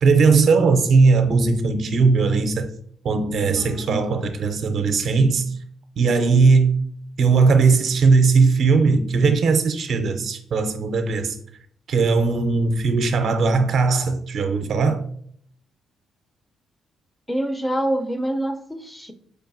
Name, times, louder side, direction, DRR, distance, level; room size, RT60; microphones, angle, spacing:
voice 1, 0.0-2.7 3.0-5.4 6.0-6.8 7.2-11.3 11.9-15.0, right 4 dB, 60° right, 0.5 m, -18 dB
voice 2, 3.5-4.0 17.3-19.1, right 1 dB, 10° left, 0.4 m, -26 dB
4.7 x 2.6 x 2.5 m
cardioid pair, 90°, 0 cm